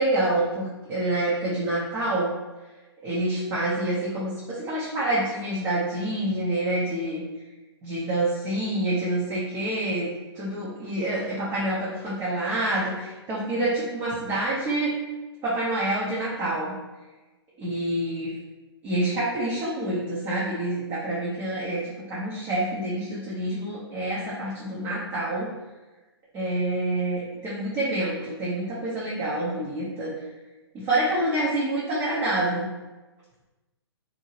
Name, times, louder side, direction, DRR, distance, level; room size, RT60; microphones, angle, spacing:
voice 1, 0.0-2.3 3.0-7.2 7.8-10.1 10.3-14.9 15.4-16.7 17.6-18.3 18.8-21.8 22.1-25.5 26.3-30.1 30.8-32.7, right 1 dB, 25° right, -8 dB, 0.7 m, -27 dB
2.8 x 2.7 x 2.8 m, 1.2 s
figure-of-eight pair, 120°, 14 cm